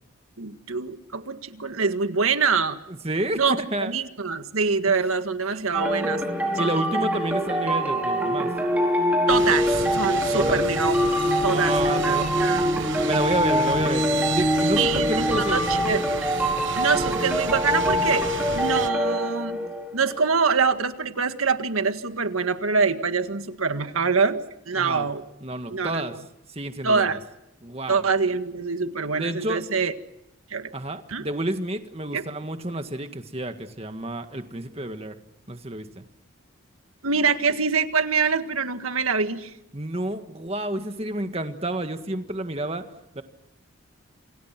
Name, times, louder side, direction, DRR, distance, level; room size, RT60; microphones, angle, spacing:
voice 1, 0.4-2.8 3.4-6.2 6.6-6.7 9.3-11.0 11.4-12.7 14.8-16.0 16.8-18.3 18.5-19.6 19.9-24.4 24.7-25.2 25.7-26.1 26.8-27.2 27.9-29.9 30.5-30.7 31.1-31.3 32.1-32.2 37.0-39.5, right 5 dB, 85° right, 8 dB, 1.8 m, -25 dB
voice 2, 2.9-4.0 6.6-8.5 10.3-10.7 11.5-12.3 13.0-15.9 24.7-25.1 25.4-26.1 26.5-27.2 27.6-28.1 29.2-29.6 30.7-35.2 35.5-36.0 39.7-42.8 43.2-43.3, right 1 dB, 30° right, 7 dB, 1.8 m, -30 dB
sound 1, 5.7-20.2, equal, 5° right, 4.6 m, -24 dB
sound 2, 9.3-18.9, right 5 dB, 60° right, 1.2 m, -33 dB
28.0 x 27.5 x 6.0 m, 0.84 s
head